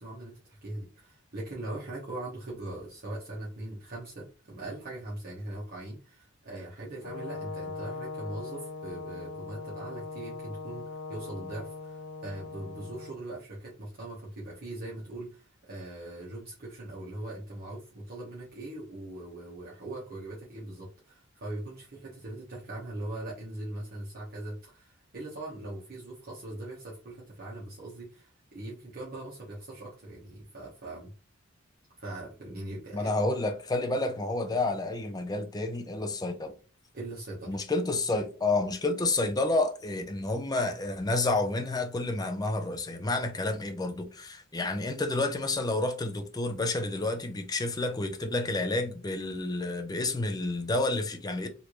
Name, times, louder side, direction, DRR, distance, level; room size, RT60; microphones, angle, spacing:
voice 1, 0.0-31.1 32.0-33.4 36.9-37.6, right 1 dB, 50° right, 1.0 m, -41 dB
Brass instrument, 7.0-13.1, left 3 dB, 80° left, 1.0 m, -40 dB
voice 2, 32.9-36.5 37.5-51.5, left 2 dB, 20° left, 0.5 m, -30 dB
3.2 x 2.6 x 3.0 m
head